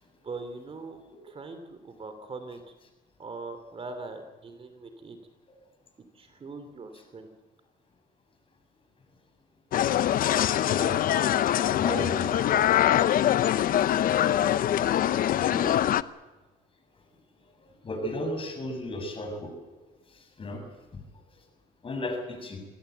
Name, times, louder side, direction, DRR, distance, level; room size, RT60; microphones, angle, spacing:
voice 1, 0.2-1.0 1.2-2.6 3.2-5.2 6.1-7.3, right 3 dB, 35° right, 8 dB, 3.0 m, -41 dB
sound 1, 9.7-16.0, left 11 dB, 55° left, 0.8 m, -23 dB
voice 2, 11.7-12.3 13.1-13.4 15.4-15.7 17.8-19.5 20.4-20.6 21.8-22.6, left 1 dB, 30° left, 5 dB, 7.1 m, -33 dB
26.0 x 17.5 x 8.1 m, 1.2 s
cardioid pair, 110°, 17 cm